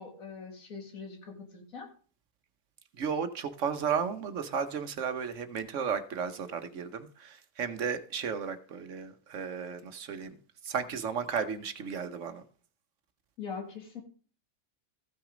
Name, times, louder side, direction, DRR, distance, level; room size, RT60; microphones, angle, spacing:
voice 1, 0.0-1.9 13.4-14.0, left 5 dB, 90° left, 2.3 m, -42 dB
voice 2, 3.0-10.4 10.6-12.4, right 6 dB, 65° right, 1.1 m, -34 dB
14.5 x 6.1 x 5.0 m
omnidirectional pair, 1.4 m